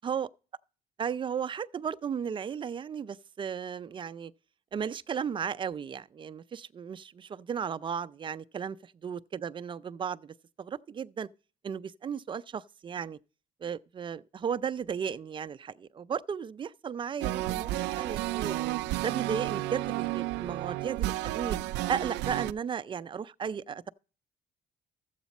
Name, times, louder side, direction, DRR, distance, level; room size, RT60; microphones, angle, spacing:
voice 1, 1.0-4.3 4.7-8.8 9.0-11.3 11.6-13.2 13.6-17.7 18.0-18.6 19.0-21.6 21.9-23.9, right 7 dB, 30° right, 0.4 m, -35 dB
sound 1, 17.2-22.5, right 16 dB, 85° right, 0.4 m, -32 dB
13.5 x 8.1 x 4.1 m
cardioid pair, 110°, 17 cm